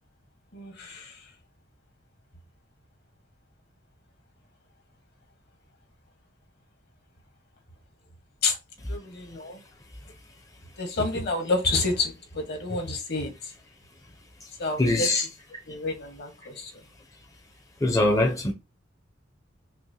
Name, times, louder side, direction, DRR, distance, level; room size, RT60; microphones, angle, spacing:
voice 1, 0.5-1.3 8.4-8.6 8.9-9.6 10.8-13.5 14.6-15.1 15.7-16.8, left 3 dB, 55° left, 1.4 m, -29 dB
voice 2, 9.2-9.5 10.1-10.2 14.4-14.5 14.8-15.3 15.7-15.8 16.5-16.6 17.8-18.5, left 2 dB, 15° left, 0.6 m, -24 dB
5.8 x 2.1 x 2.7 m
head